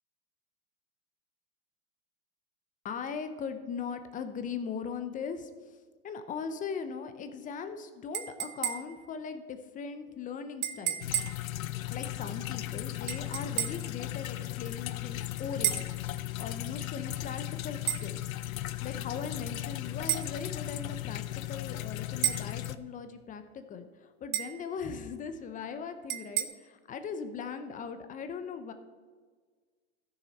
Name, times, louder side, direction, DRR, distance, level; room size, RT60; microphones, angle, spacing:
voice 1, 2.8-5.8 6.0-11.0 11.9-18.2 18.8-21.2 21.5-28.7, left 6 dB, 20° left, 9 dB, 0.7 m, -39 dB
sound 1, 8.1-9.1 10.6-11.5 13.1-13.9 15.6-16.0 17.9-18.1 20.1-20.3 22.2-22.5 24.3-24.6 26.1-26.4, right 13 dB, 45° right, 0.8 m, -32 dB
sound 2, 11.0-22.8, left 15 dB, 85° left, 0.6 m, -36 dB
14.0 x 6.6 x 4.0 m, 1.5 s
hypercardioid pair, 130°, 40 cm